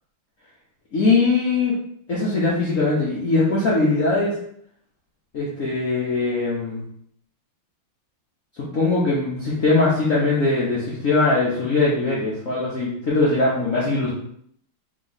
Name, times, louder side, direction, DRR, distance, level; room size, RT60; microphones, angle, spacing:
voice 1, 0.9-1.7 2.1-4.3 5.3-6.8 8.6-14.1, left 3 dB, 55° left, -7 dB, 0.9 m, -21 dB
3.5 x 3.2 x 3.9 m, 0.67 s
omnidirectional pair, 2.3 m